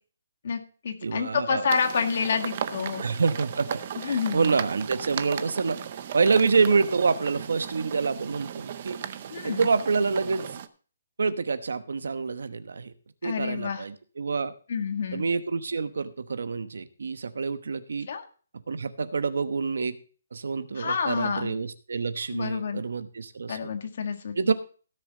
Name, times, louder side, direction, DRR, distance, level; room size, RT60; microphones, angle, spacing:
voice 1, 0.4-3.0 4.0-4.6 9.3-9.7 13.2-13.8 14.7-15.2 18.1-18.2 20.7-21.5 22.3-22.8 23.5-24.5, left 6 dB, 45° left, 5 dB, 1.7 m, -29 dB
voice 2, 1.0-1.7 3.0-5.8 6.1-9.0 9.4-10.5 11.2-12.9 13.2-14.5 15.1-18.1 18.7-20.0 20.3-23.7 24.3-24.5, right 4 dB, 70° right, 12 dB, 1.0 m, -27 dB
sound 1, 1.7-10.7, right 9 dB, 30° right, 0.6 m, -36 dB
16.5 x 7.0 x 4.0 m, 0.40 s
hypercardioid pair, 180°, 0 cm